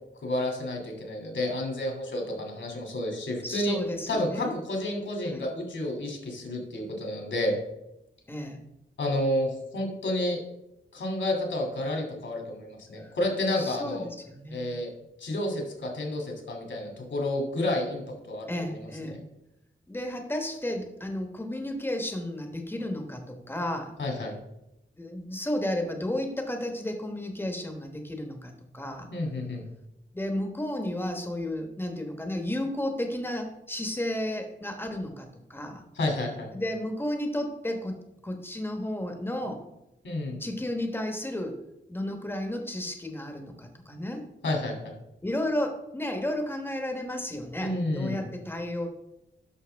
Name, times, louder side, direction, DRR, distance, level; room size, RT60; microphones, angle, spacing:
voice 1, 0.2-3.8 4.1-7.6 9.0-10.4 10.9-14.1 14.5-14.9 15.2-19.2 24.0-24.4 29.1-29.6 36.0-36.5 40.0-40.4 44.4-44.9 47.6-48.2, left 1 dB, 70° left, 1 dB, 2.7 m, -30 dB
voice 2, 3.4-4.5 5.2-5.4 8.3-8.6 13.6-14.6 18.5-19.2 19.9-23.9 25.0-29.1 30.1-35.8 36.5-39.6 40.4-41.6 41.9-44.2 45.2-48.9, left 1 dB, 10° left, 4 dB, 1.2 m, -33 dB
11.5 x 6.2 x 3.5 m, 0.88 s
wide cardioid pair, 160°, 20 cm